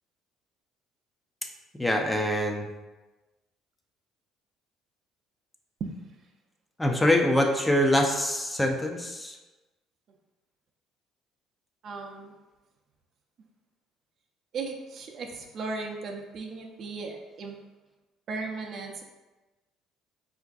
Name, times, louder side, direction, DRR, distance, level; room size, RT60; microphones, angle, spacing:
voice 1, 1.8-2.7 6.8-9.4, left 1 dB, 10° left, 2 dB, 0.5 m, -24 dB
voice 2, 11.8-12.4 14.5-17.6 18.3-19.0, right 4 dB, 55° right, 1 dB, 0.5 m, -36 dB
4.3 x 2.5 x 2.4 m, 1.1 s
supercardioid pair, 75°, 0 cm